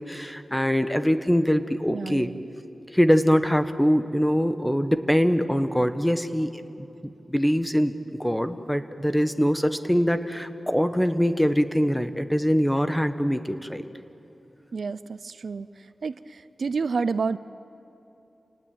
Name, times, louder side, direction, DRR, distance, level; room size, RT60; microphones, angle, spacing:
voice 1, 0.0-2.3 2.9-6.9 7.3-7.9 8.2-13.9, equal, 5° left, 9 dB, 1.2 m, -23 dB
voice 2, 1.9-2.4 14.7-15.7 16.0-17.4, right 5 dB, 70° right, 15 dB, 0.5 m, -29 dB
29.0 x 19.0 x 8.8 m, 2.9 s
wide cardioid pair, 90°, 0 cm